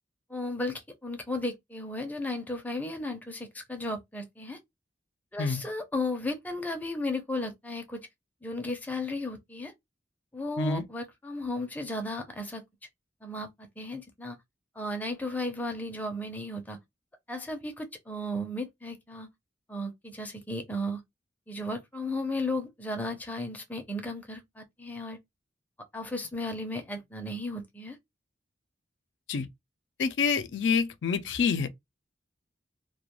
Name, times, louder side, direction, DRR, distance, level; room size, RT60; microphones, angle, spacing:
voice 1, 0.3-4.6 5.3-8.0 8.4-9.7 10.3-12.6 13.2-14.4 14.8-16.8 17.3-19.3 19.7-21.0 21.5-25.2 25.9-28.0, left 1 dB, 10° left, 0.5 m, -34 dB
voice 2, 30.0-31.7, left 5 dB, 80° left, 0.4 m, -27 dB
2.3 x 2.2 x 2.9 m
head